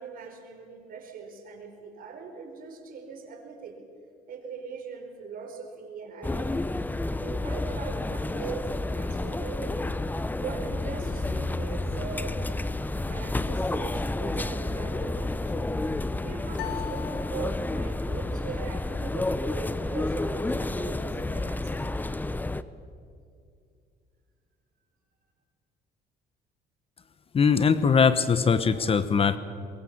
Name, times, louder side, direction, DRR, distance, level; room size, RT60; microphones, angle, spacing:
voice 1, 0.0-3.8 4.3-9.9 10.4-12.4 13.1-15.7 16.2-22.0 24.8-24.9, right 5 dB, 60° right, 3 dB, 4.8 m, -41 dB
sound 1, 6.2-22.6, left 2 dB, 10° left, 0.8 m, -30 dB
sound 2, 16.5-18.0, left 11 dB, 80° left, 0.9 m, -39 dB
voice 2, 27.3-29.4, left 6 dB, 35° left, 13 dB, 1.0 m, -21 dB
23.0 x 22.0 x 7.4 m, 2.3 s
cardioid pair, 110°, 17 cm